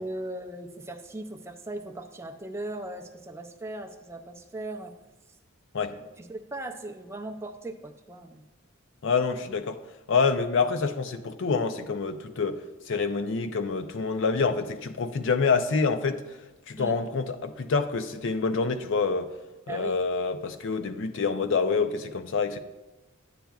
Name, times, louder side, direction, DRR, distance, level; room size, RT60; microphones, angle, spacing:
voice 1, 0.0-5.0 5.9-8.5 16.8-17.0 19.7-20.0, right 2 dB, 15° right, 4 dB, 0.4 m, -38 dB
voice 2, 9.0-9.8 10.1-12.6 12.9-16.2 16.7-19.3 19.7-22.6, left 4 dB, 60° left, 10 dB, 0.5 m, -27 dB
10.0 x 9.1 x 2.3 m, 1.1 s
head